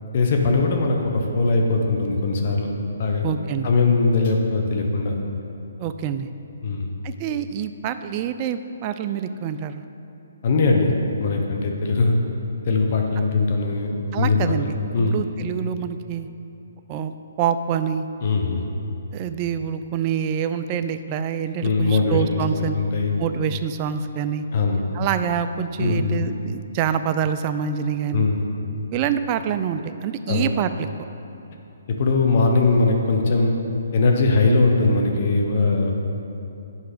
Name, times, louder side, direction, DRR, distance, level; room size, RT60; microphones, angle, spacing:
voice 1, 0.1-2.7 3.0-3.2 3.6-5.1 6.6-6.9 10.4-10.9 11.2-12.2 12.6-15.2 18.2-18.7 21.6-23.1 24.5-24.8 25.8-26.2 28.1-28.4 30.3-30.5 31.9-33.5 33.9-35.9, left 3 dB, 50° left, 2 dB, 0.9 m, -20 dB
voice 2, 3.2-3.7 5.8-6.3 7.0-9.8 14.1-16.3 16.9-18.1 19.1-22.8 23.2-24.5 24.9-28.3 28.9-30.9, right 8 dB, 30° right, 10 dB, 0.3 m, -26 dB
8.1 x 5.6 x 5.0 m, 2.8 s
hypercardioid pair, 145°, 0 cm